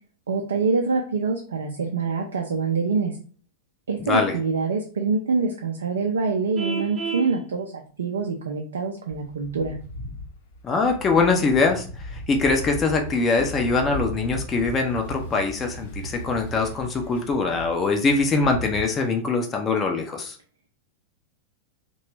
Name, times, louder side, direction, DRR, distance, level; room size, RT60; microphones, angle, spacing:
voice 1, 0.3-3.2 3.9-9.8, right 4 dB, 70° right, 2 dB, 0.4 m, -25 dB
voice 2, 4.0-4.4 10.6-20.4, left 3 dB, 25° left, 3 dB, 0.5 m, -23 dB
Vehicle horn car horn honking, 6.6-7.3, right 5 dB, 15° right, 0.7 m, -29 dB
sound 1, 9.1-18.8, equal, 60° left, 0.8 m, -37 dB
2.8 x 2.2 x 3.1 m, 0.40 s
figure-of-eight pair, 90°, 0 cm